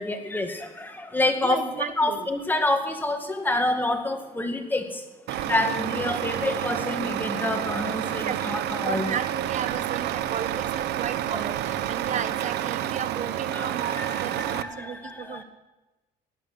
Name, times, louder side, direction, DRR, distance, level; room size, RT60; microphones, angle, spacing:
voice 1, 0.0-1.7 2.0-9.1 11.3-11.4 13.5-15.4, left 2 dB, 10° left, 5 dB, 2.0 m, -28 dB
voice 2, 1.4-2.3 8.2-8.4 8.8-15.4, right 7 dB, 45° right, 11 dB, 1.2 m, -33 dB
Truck, 5.3-14.6, right 12 dB, 80° right, 0.8 m, -29 dB
16.5 x 11.0 x 6.3 m, 1.1 s
cardioid pair, 110°, 17 cm